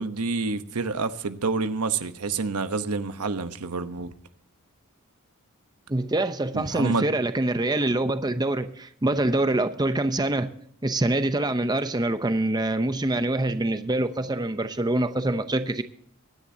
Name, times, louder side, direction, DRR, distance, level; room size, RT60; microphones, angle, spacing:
voice 1, 0.0-4.1 6.5-7.1, right 4 dB, 85° right, 1.0 m, -28 dB
voice 2, 5.9-10.5 10.8-15.8, right 2 dB, 20° right, 0.7 m, -25 dB
23.5 x 10.5 x 2.8 m
head